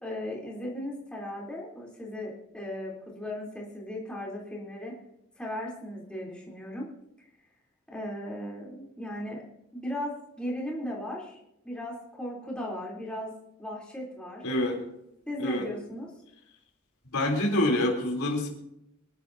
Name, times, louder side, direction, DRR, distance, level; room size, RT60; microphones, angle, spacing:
voice 1, 0.0-4.9 5.4-6.9 7.2-7.3 7.9-9.4 9.7-11.4 11.7-13.3 13.6-14.4 15.3-16.1, left 1 dB, 5° left, -4 dB, 3.4 m, -37 dB
voice 2, 14.4-14.8 15.4-15.7 17.1-18.5, left 1 dB, 85° left, 0 dB, 3.5 m, -26 dB
24.5 x 11.5 x 2.8 m, 0.82 s
head